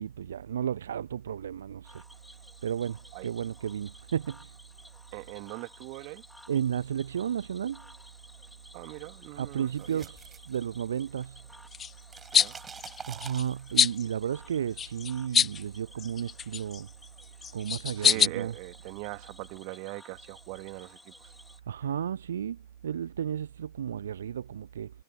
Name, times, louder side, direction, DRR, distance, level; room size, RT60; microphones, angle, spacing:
voice 1, 0.0-2.0 2.6-4.4 6.5-7.8 9.4-11.4 13.1-16.9 17.5-18.5 21.7-22.6 22.8-24.9, right 9 dB, 65° right, 1.0 m, -33 dB
Cricket / Frog, 1.8-21.6, left 1 dB, 5° left, 3.5 m, -55 dB
voice 2, 5.1-6.2 8.7-10.0 12.3-12.6 18.0-21.3, right 30 dB, 45° right, 2.5 m, -41 dB
sound 1, 9.5-11.2 11.5-13.9, right 6 dB, 20° right, 7.9 m, -46 dB
sound 2, 11.7-11.9 12.3-12.5 12.8-13.4 13.8-14.0 14.8-15.6 16.0-16.8 17.4-18.3, left 7 dB, 20° left, 0.5 m, -25 dB
figure-of-eight pair, 90°, 0 cm